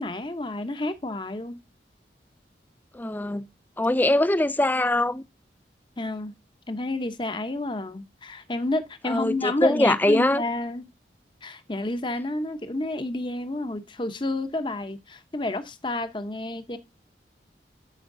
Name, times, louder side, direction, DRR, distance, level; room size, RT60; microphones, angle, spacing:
voice 1, 0.0-1.6 6.0-6.3 6.7-10.8 11.4-16.8, left 2 dB, 25° left, 0.8 m, -30 dB
voice 2, 2.9-3.4 3.8-5.2 9.1-10.4, left 1 dB, 10° left, 0.3 m, -22 dB
10.5 x 5.7 x 2.6 m
head